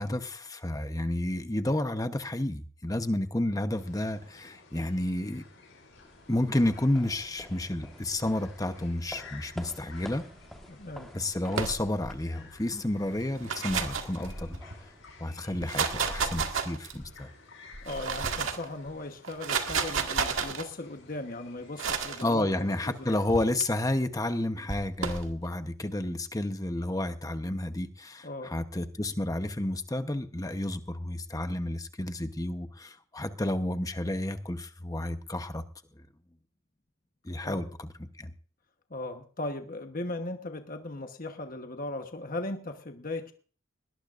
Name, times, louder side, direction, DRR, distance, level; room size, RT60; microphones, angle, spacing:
voice 1, 0.0-5.4 6.3-10.2 11.1-14.6 15.2-17.3 22.2-35.6 37.2-38.3, left 1 dB, 15° left, 8 dB, 0.9 m, -31 dB
sound 1, 3.7-23.1, left 4 dB, 65° left, 5.6 m, -54 dB
sound 2, 5.9-15.5, equal, ahead, 1.4 m, -50 dB
voice 2, 10.7-11.1 17.8-23.2 28.2-28.5 37.4-37.6 38.9-43.3, left 2 dB, 40° left, 5 dB, 1.2 m, -38 dB
sound 3, 11.5-12.2 13.2-14.8 15.5-17.1 17.7-18.7 19.2-20.7 21.8-22.2 23.3-23.6 24.7-25.3, right 5 dB, 70° right, 1.9 m, -31 dB
20.5 x 18.5 x 2.5 m, 0.42 s
head